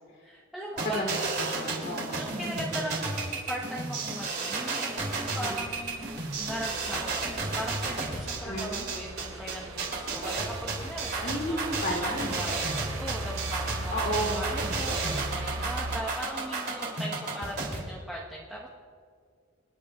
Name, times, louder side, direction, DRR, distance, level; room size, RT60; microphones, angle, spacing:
voice 1, 0.2-1.1 2.1-6.1 6.4-11.1 11.5-11.6 11.8-12.7 13.0-18.7, equal, ahead, -6 dB, 1.2 m, -39 dB
voice 2, 0.8-2.2 5.4-5.6 8.4-8.8 11.2-12.3 13.9-14.4, equal, 55° left, -2 dB, 3.3 m, -32 dB
sound 1, 0.8-17.8, right 3 dB, 50° right, 3.2 m, -32 dB
sound 2, 5.5-16.0, right 2 dB, 75° right, 0.7 m, -39 dB
28.0 x 10.5 x 2.5 m, 2.1 s
head